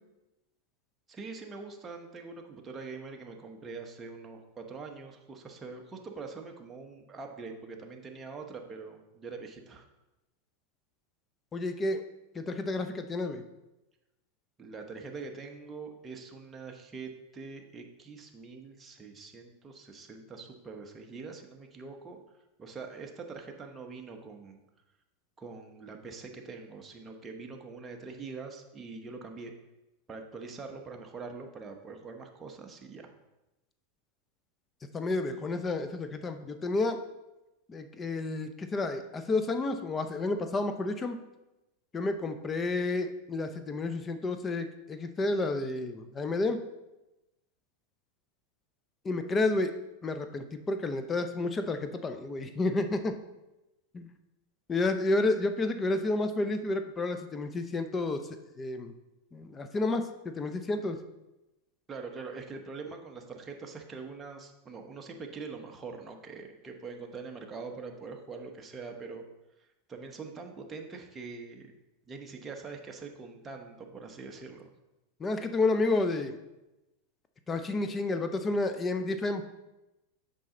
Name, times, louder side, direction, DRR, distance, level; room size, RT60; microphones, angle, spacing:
voice 1, 1.1-9.9 14.6-22.2 22.6-24.6 25.4-29.5 30.1-33.1 61.9-69.2 69.9-71.7 72.1-74.7, right 4 dB, 20° right, 3 dB, 1.1 m, -43 dB
voice 2, 11.5-12.0 12.3-13.4 34.9-37.0 37.7-41.2 41.9-46.6 49.0-49.7 50.0-53.1 53.9-54.1 54.7-58.3 58.6-58.9 59.3-61.0 75.2-76.4 77.5-79.4, left 2 dB, 20° left, 8 dB, 0.7 m, -30 dB
7.5 x 5.4 x 3.8 m, 0.99 s
hypercardioid pair, 115°, 0 cm